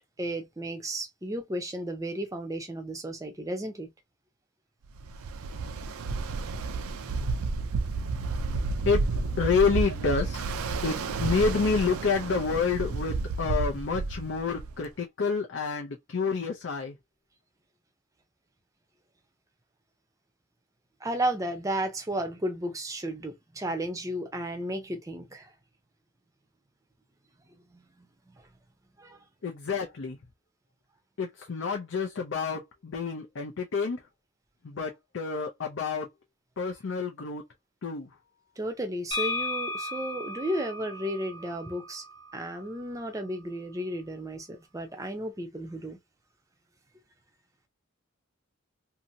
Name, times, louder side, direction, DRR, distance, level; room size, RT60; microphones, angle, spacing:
voice 1, 0.2-3.9 21.0-25.5 27.7-28.1 29.0-29.2 38.6-42.0 42.3-46.0, right 1 dB, 15° right, 0.6 m, -33 dB
Ocean, 5.0-14.9, right 3 dB, 90° right, 0.4 m, -31 dB
voice 2, 9.4-10.4 10.8-17.0 29.4-30.2 31.2-34.0 34.6-36.1 36.6-37.4 37.8-38.1, left 5 dB, 60° left, 0.5 m, -28 dB
sound 1, 39.1-42.9, left 2 dB, 20° left, 1.0 m, -35 dB
2.7 x 2.6 x 2.6 m
head